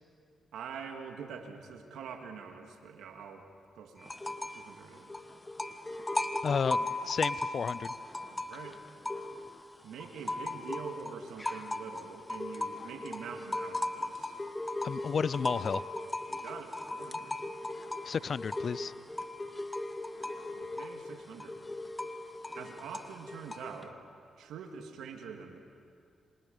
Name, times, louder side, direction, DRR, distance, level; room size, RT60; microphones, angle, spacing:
voice 1, 0.5-3.5 3.7-5.3 8.3-8.8 9.8-14.4 16.3-17.5 20.5-21.7 22.6-24.0 24.4-25.6, right 6 dB, 80° right, 4 dB, 2.2 m, -45 dB
sound 1, 4.0-4.7 4.9-9.6 10.0-23.8, left 2 dB, 20° left, 1.4 m, -37 dB
voice 2, 6.4-7.9 14.8-15.8 18.0-18.9, left 6 dB, 60° left, 19 dB, 0.5 m, -32 dB
27.5 x 26.5 x 5.4 m, 2.3 s
supercardioid pair, 55°, 0 cm